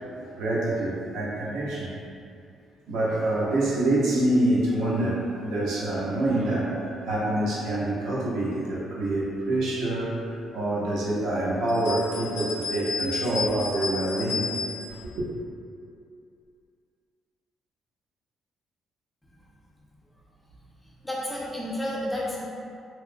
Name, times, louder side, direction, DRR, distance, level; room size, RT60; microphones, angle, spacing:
voice 1, 0.1-1.9 2.9-14.4 14.9-15.3, right 1 dB, 85° right, -6 dB, 0.6 m, -26 dB
sound 1, 11.7-15.0, left 4 dB, 65° left, 0.5 m, -32 dB
voice 2, 21.0-22.5, left 1 dB, 5° left, -6 dB, 0.3 m, -31 dB
2.9 x 2.0 x 2.5 m, 2.4 s
cardioid pair, 175°, 0 cm